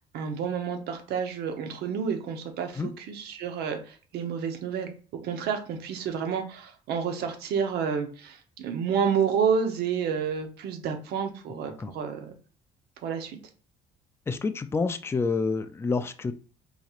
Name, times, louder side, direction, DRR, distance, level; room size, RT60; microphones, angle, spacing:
voice 1, 0.1-4.9 5.2-12.3 13.0-13.4, right 7 dB, 75° right, 6 dB, 0.8 m, -29 dB
voice 2, 14.3-16.3, left 4 dB, 15° left, 10 dB, 0.3 m, -28 dB
4.0 x 2.9 x 2.4 m, 0.39 s
cardioid pair, 110°, 17 cm